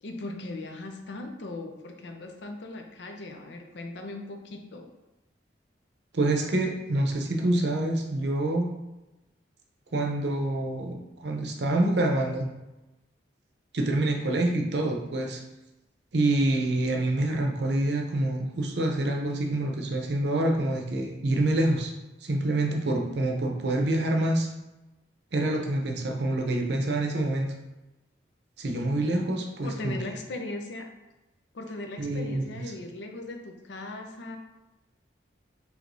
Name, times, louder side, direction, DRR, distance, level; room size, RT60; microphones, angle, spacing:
voice 1, 0.0-4.9 29.6-30.9 31.5-34.4, left 2 dB, 70° left, 4 dB, 0.6 m, -38 dB
voice 2, 6.1-8.7 9.9-12.5 13.7-15.4 16.1-21.9 22.2-24.5 25.3-27.5 28.6-30.0 32.0-32.6, right 1 dB, 65° right, 1 dB, 0.6 m, -26 dB
4.7 x 3.2 x 2.6 m, 1.0 s
head